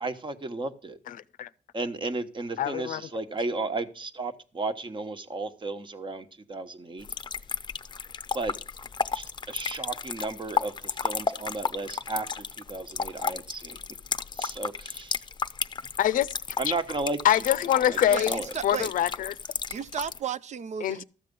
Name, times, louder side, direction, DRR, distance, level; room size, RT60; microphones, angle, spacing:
voice 1, 0.0-1.0 1.7-7.1 8.3-8.5 9.1-13.8 14.3-15.2 16.6-17.4 17.9-18.5, right 3 dB, 35° right, 1.2 m, -34 dB
voice 2, 1.1-1.5 2.6-3.0 16.0-16.3 17.2-18.3 18.6-19.3 20.8-21.0, left 11 dB, 90° left, 0.5 m, -24 dB
sound 1, 7.0-20.2, left 5 dB, 35° left, 0.6 m, -33 dB
voice 3, 18.1-18.9 19.7-21.0, right 8 dB, 60° right, 0.5 m, -34 dB
13.5 x 7.5 x 5.3 m
cardioid pair, 95°, 14 cm